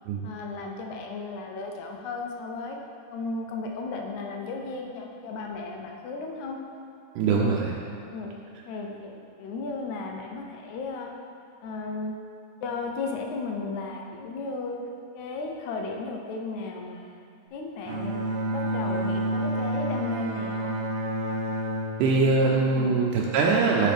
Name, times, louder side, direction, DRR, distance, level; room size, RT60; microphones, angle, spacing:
voice 1, 0.2-2.8 3.1-6.6 7.3-7.5 8.1-8.3 8.7-9.1 9.4-11.1 11.6-12.1 12.6-14.8 15.1-17.2 17.5-18.1 18.5-20.8 22.8-23.0, left 3 dB, 75° left, 1 dB, 1.9 m, -34 dB
voice 2, 7.2-7.7 22.0-23.9, right 4 dB, 85° right, -2 dB, 2.1 m, -22 dB
Bowed string instrument, 17.9-23.3, right 1 dB, 65° right, 1.6 m, -30 dB
7.5 x 6.4 x 3.4 m, 2.3 s
omnidirectional pair, 3.6 m